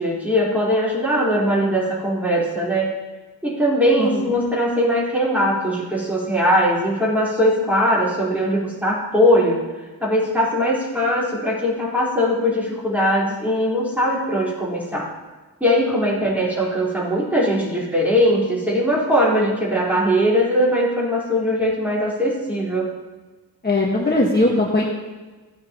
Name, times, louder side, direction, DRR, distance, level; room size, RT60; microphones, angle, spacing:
voice 1, 0.0-2.9 3.4-9.6 10.0-15.1 15.6-22.9, equal, 5° right, -6 dB, 4.3 m, -20 dB
voice 2, 23.6-24.8, left 2 dB, 25° left, -4 dB, 1.7 m, -19 dB
16.5 x 9.4 x 3.1 m, 1.3 s
wide cardioid pair, 90°, 37 cm